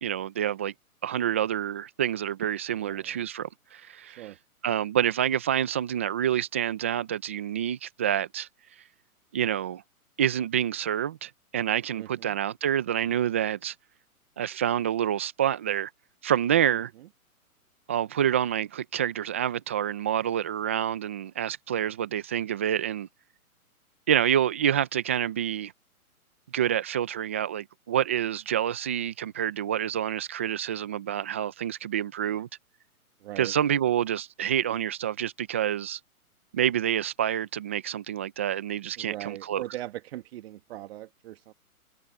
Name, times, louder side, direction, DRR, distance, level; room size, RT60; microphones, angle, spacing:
voice 1, 0.0-0.7 1.0-4.3 4.6-8.5 9.3-9.8 10.2-13.7 14.4-15.9 16.2-16.9 17.9-23.1 24.1-25.7 26.5-32.5 33.4-36.0 36.5-39.6, right 10 dB, 10° right, 0.4 m, -27 dB
voice 2, 2.8-3.3 4.1-4.4 12.0-12.3 33.2-33.5 39.0-41.5, right 14 dB, 45° right, 1.6 m, -40 dB
hypercardioid pair, 130°, 44 cm